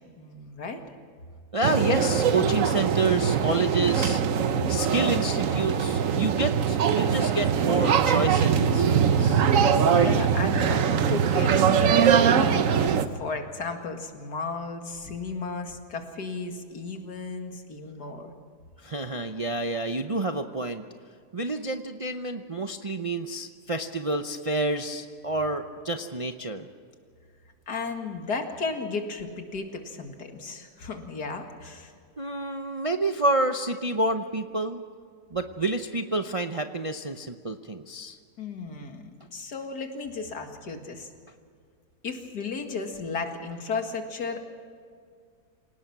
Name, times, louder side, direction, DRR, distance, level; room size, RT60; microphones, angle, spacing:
voice 1, 0.2-0.8 9.9-11.5 11.8-18.3 27.7-31.9 38.4-39.0 39.3-41.1 42.0-44.4, left 4 dB, 80° left, 4 dB, 2.5 m, -34 dB
voice 2, 1.5-4.2 4.7-9.4 18.8-20.8 21.3-26.7 32.2-34.8 35.3-38.2, right 2 dB, 35° right, 6 dB, 0.5 m, -29 dB
sound 1, 1.6-13.0, right 7 dB, 60° right, 1.2 m, -22 dB
27.5 x 18.5 x 6.0 m, 2.1 s
omnidirectional pair, 1.7 m